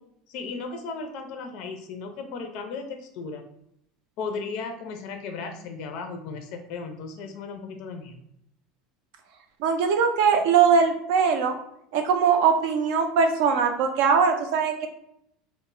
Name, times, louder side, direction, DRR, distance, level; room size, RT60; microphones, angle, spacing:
voice 1, 0.3-3.4 4.2-8.3, left 4 dB, 65° left, 5 dB, 0.4 m, -35 dB
voice 2, 9.6-11.6 11.9-14.9, right 6 dB, 70° right, 5 dB, 0.4 m, -21 dB
2.1 x 2.0 x 3.7 m, 0.76 s
supercardioid pair, 110°, 0 cm